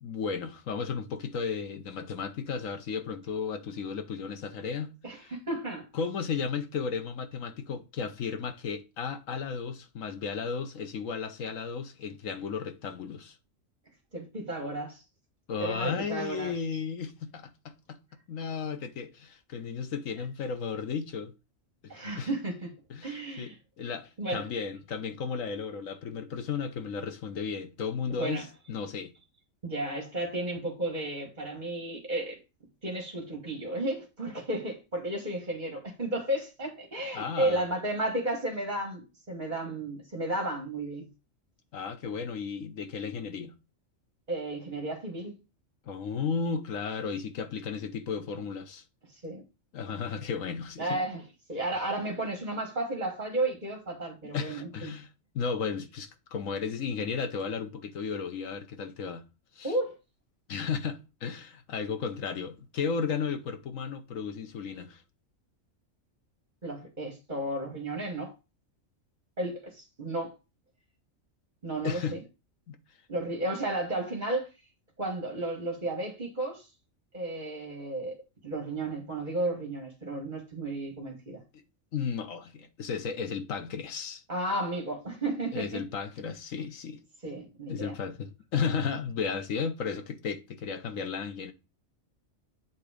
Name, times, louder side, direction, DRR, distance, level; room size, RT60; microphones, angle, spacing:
voice 1, 0.0-5.3 5.9-13.4 15.5-18.0 18.3-21.3 21.8-22.3 22.9-29.1 37.1-37.6 41.7-43.5 45.8-48.8 49.7-51.0 54.3-55.1 55.3-59.2 59.5-59.7 60.5-65.0 71.8-72.1 72.7-72.8 81.9-84.2 85.5-87.0 87.7-91.5, left 6 dB, 80° left, 1.4 m, -34 dB
voice 2, 5.0-5.9 14.1-15.0 15.6-16.6 21.9-22.7 23.0-23.6 24.2-24.5 28.2-28.4 29.6-32.4 32.8-41.1 44.3-45.3 49.1-49.4 50.8-51.2 51.5-54.9 59.6-60.0 66.6-68.3 69.4-70.3 71.6-72.2 73.1-74.5 75.0-76.7 77.1-78.1 78.4-81.4 84.3-85.8 87.2-87.9, right 1 dB, 35° right, 1.9 m, -33 dB
8.3 x 4.0 x 5.0 m
omnidirectional pair, 1.4 m